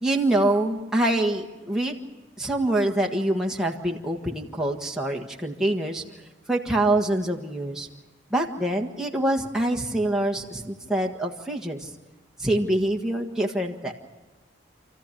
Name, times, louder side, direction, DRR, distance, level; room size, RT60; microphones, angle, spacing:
voice 1, 0.0-2.0 2.4-6.0 6.5-7.9 8.3-11.9 12.4-13.9, right 1 dB, 5° right, 0 dB, 1.5 m, -25 dB
29.0 x 14.5 x 9.8 m, 1.2 s
head